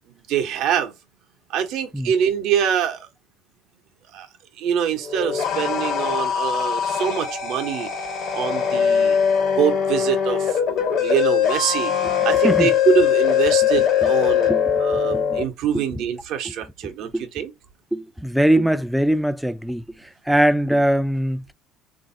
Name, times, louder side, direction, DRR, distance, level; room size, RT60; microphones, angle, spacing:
voice 1, 0.1-0.9 1.5-3.1 4.1-4.3 4.6-7.9 8.3-9.2 9.6-11.9 12.2-14.5 14.8-17.5, right 8 dB, 70° right, 0.8 m, -24 dB
sound 1, 5.0-15.4, left 8 dB, 60° left, 1.2 m, -21 dB
voice 2, 13.7-14.1 14.5-15.4 15.7-15.8 16.5-16.6 16.8-17.3 17.9-21.4, right 1 dB, 5° right, 0.3 m, -22 dB
3.3 x 2.5 x 2.6 m
supercardioid pair, 80°, 0 cm